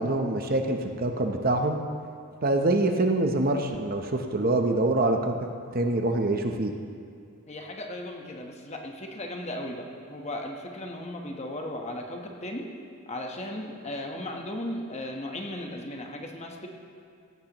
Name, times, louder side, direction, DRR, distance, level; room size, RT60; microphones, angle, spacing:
voice 1, 0.0-1.8 2.4-6.7, right 2 dB, 40° right, 4 dB, 0.7 m, -25 dB
voice 2, 7.5-12.7 13.1-16.7, left 1 dB, 30° left, 1 dB, 1.1 m, -36 dB
16.5 x 14.5 x 3.0 m, 2.3 s
head